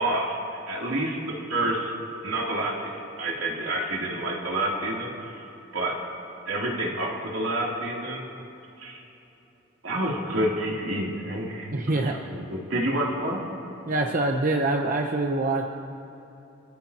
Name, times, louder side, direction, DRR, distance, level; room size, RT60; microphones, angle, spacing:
voice 1, 0.0-1.9 2.2-5.4 5.7-6.0 6.5-8.2 8.8-9.0 9.8-11.7 11.9-13.4, right 1 dB, 85° right, -3 dB, 3.2 m, -28 dB
voice 2, 11.7-12.2 13.9-15.6, right 2 dB, 45° right, 2 dB, 0.8 m, -25 dB
27.0 x 15.5 x 2.9 m, 3.0 s
head